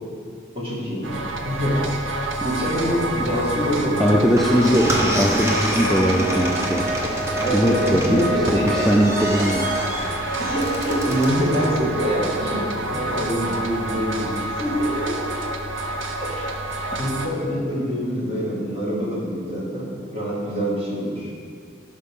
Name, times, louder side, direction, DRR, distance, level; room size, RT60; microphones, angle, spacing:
voice 1, 0.5-1.9 2.4-4.0 7.4-9.1 9.4-15.3 16.2-16.5 17.0-21.3, equal, 30° right, -6 dB, 2.1 m, -25 dB
sound 1, 1.0-17.3, right 2 dB, 90° right, 0.7 m, -28 dB
voice 2, 4.0-6.9 7.5-9.7 16.9-17.0, equal, ahead, -3 dB, 0.4 m, -20 dB
sound 2, 4.2-11.8, equal, 15° right, 0.8 m, -28 dB
11.0 x 5.6 x 3.7 m, 2.2 s
head